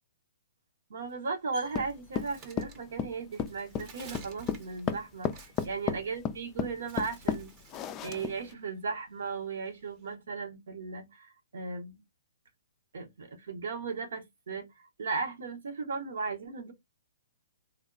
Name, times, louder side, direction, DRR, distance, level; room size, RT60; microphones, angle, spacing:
voice 1, 0.9-7.5 8.0-12.0 12.9-16.7, right 4 dB, 70° right, 0.9 m, -36 dB
Bird, 1.0-6.5 6.8-8.1 8.4-10.1, right 4 dB, 30° right, 0.7 m, -52 dB
sound 1, 1.7-8.5, left 8 dB, 25° left, 0.3 m, -33 dB
3.3 x 2.2 x 2.5 m
hypercardioid pair, 135°, 0 cm